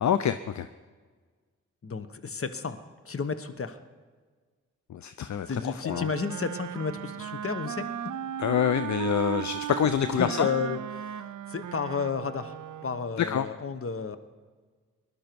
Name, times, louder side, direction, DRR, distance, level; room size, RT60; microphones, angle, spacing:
voice 1, 0.0-0.7 4.9-6.1 8.4-10.5 13.2-13.5, left 9 dB, 60° left, 12 dB, 0.6 m, -26 dB
voice 2, 1.8-2.8 3.0-3.8 5.4-7.9 10.2-12.6 12.8-14.2, left 5 dB, 45° left, 11 dB, 1.1 m, -32 dB
Wind instrument woodwind instrument, 5.8-13.2, right 10 dB, 70° right, 0.6 m, -36 dB
19.5 x 11.5 x 4.6 m, 1.5 s
cardioid pair, 50°, 32 cm